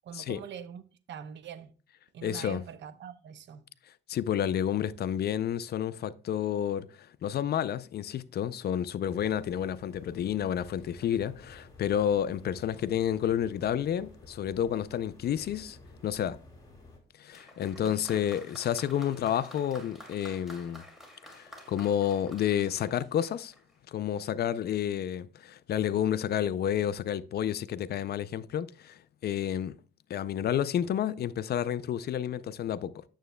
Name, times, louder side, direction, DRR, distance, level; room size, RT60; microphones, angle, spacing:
voice 1, 0.0-0.8 1.1-1.7 2.1-3.6 17.8-18.2, right 8 dB, 65° right, 0.7 m, -44 dB
voice 2, 2.2-2.6 4.1-15.8 16.0-16.4 17.2-20.8 21.3-23.5 23.9-29.8 30.1-33.0, left 10 dB, 55° left, 0.4 m, -30 dB
sound 1, 9.0-17.0, left 2 dB, 20° left, 3.3 m, -53 dB
Applause, 17.3-23.8 24.7-24.8, left 1 dB, ahead, 2.4 m, -50 dB
9.0 x 7.1 x 2.2 m
cardioid pair, 90°, 20 cm